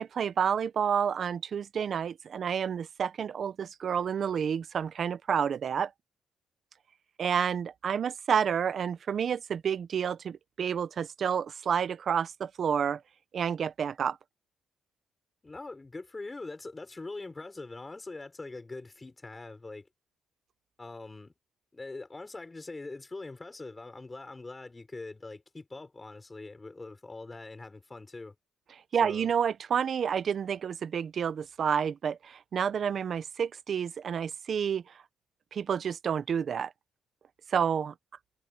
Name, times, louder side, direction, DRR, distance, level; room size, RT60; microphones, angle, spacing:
voice 1, 0.0-5.9 7.2-13.0 13.3-14.2 28.9-34.8 35.5-36.7 37.5-37.9, right 7 dB, 55° right, 1.1 m, -29 dB
voice 2, 15.4-19.9 20.8-21.3 21.7-28.3 29.0-29.3, left 3 dB, 20° left, 5.6 m, -43 dB
cardioid pair, 90°, 0 cm